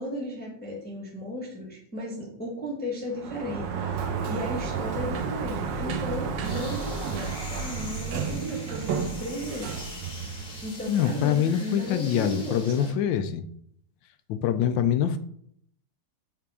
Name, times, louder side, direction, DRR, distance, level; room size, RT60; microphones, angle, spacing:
voice 1, 0.0-9.8 10.3-13.0, equal, 5° left, -3 dB, 1.1 m, -35 dB
Sliding door, 3.1-10.9, right 6 dB, 80° right, 1.4 m, -32 dB
sound 1, 6.4-12.9, left 2 dB, 30° left, 1.1 m, -43 dB
voice 2, 10.9-13.4 14.3-15.2, left 9 dB, 90° left, 11 dB, 1.3 m, -24 dB
5.9 x 3.8 x 4.8 m, 0.66 s
omnidirectional pair, 2.0 m